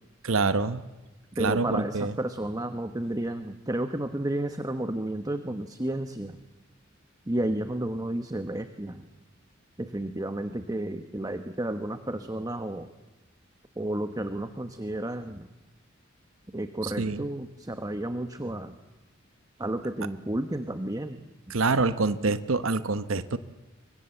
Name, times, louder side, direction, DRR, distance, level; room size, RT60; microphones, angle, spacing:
voice 1, 0.2-0.8 1.4-2.1 16.8-17.2 21.5-23.4, right 3 dB, 80° right, 12 dB, 1.0 m, -26 dB
voice 2, 1.3-6.4 7.3-9.1 9.8-12.9 13.8-15.5 16.5-18.7 19.6-21.2, right 1 dB, 20° right, 9 dB, 1.0 m, -32 dB
27.0 x 24.0 x 7.9 m, 1.1 s
head